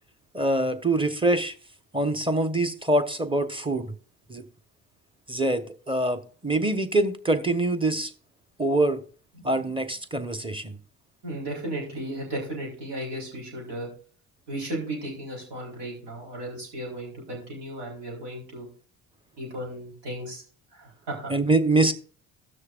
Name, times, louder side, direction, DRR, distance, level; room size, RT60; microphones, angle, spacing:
voice 1, 0.3-1.5 1.9-3.9 4.3-4.4 5.3-8.1 8.6-9.0 9.4-10.8 21.3-21.9, right 2 dB, 15° right, 1.1 m, -24 dB
voice 2, 11.2-13.9 14.5-18.7 19.4-20.4 20.7-21.3, right 1 dB, 75° right, 4.2 m, -35 dB
17.5 x 6.5 x 2.5 m
hypercardioid pair, 60°, 39 cm